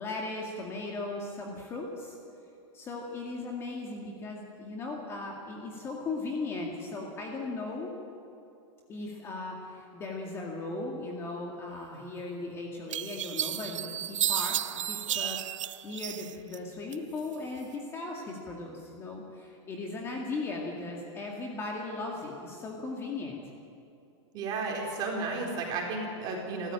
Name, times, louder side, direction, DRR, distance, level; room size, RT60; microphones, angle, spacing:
voice 1, 0.0-2.2 2.7-7.9 8.9-23.4, left 3 dB, 15° left, 0 dB, 2.1 m, -37 dB
sound 1, 12.2-12.3 12.9-16.6 16.9-17.7, right 11 dB, 90° right, 0.6 m, -32 dB
voice 2, 24.3-26.7, right 3 dB, 25° right, 0 dB, 4.4 m, -33 dB
29.0 x 14.0 x 9.0 m, 2.6 s
supercardioid pair, 165°, 16 cm